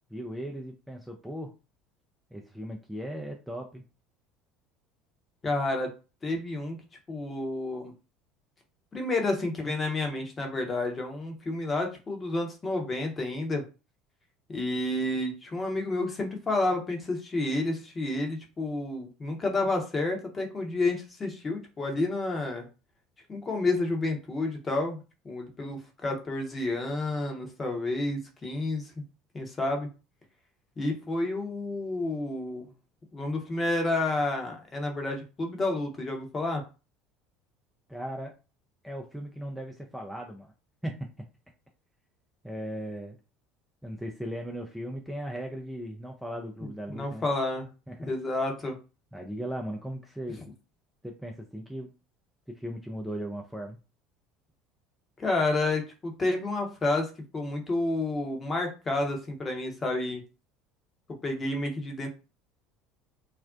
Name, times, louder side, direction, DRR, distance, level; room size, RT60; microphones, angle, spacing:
voice 1, 0.1-1.5 2.3-3.8 37.9-38.3 38.8-40.5 40.8-40.9 42.4-43.2 43.8-47.2 47.9-48.1 49.1-50.4 51.0-51.9 52.5-53.8, equal, ahead, 1 dB, 0.4 m, -37 dB
voice 2, 5.4-5.9 6.2-6.8 7.1-7.9 8.9-13.6 14.5-22.7 23.3-28.9 29.3-29.9 30.8-32.7 33.1-36.6 46.6-47.7 48.1-48.7 55.2-60.2 61.2-62.1, left 2 dB, 30° left, 3 dB, 0.8 m, -30 dB
2.5 x 2.0 x 2.4 m, 0.31 s
figure-of-eight pair, 65°, 0 cm